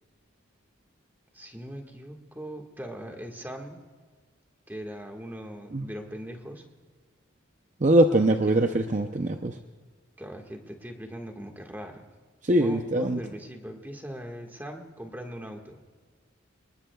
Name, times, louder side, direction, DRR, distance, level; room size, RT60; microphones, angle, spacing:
voice 1, 1.3-3.8 4.7-6.6 8.1-8.6 10.2-12.0 12.6-15.8, equal, 10° right, 2 dB, 1.7 m, -40 dB
voice 2, 7.8-9.6 12.4-13.2, right 1 dB, 40° right, 5 dB, 0.6 m, -22 dB
26.5 x 20.5 x 2.4 m, 1.5 s
head